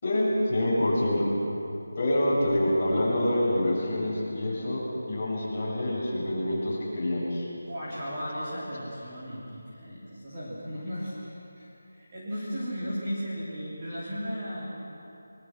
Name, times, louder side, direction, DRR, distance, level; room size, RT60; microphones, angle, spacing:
voice 1, 0.0-1.3 2.0-7.5, left 1 dB, 20° left, -9 dB, 6.7 m, -26 dB
voice 2, 7.7-14.7, equal, 20° right, -10 dB, 3.3 m, -35 dB
24.0 x 22.5 x 6.1 m, 2.7 s
figure-of-eight pair, 180°, 0 cm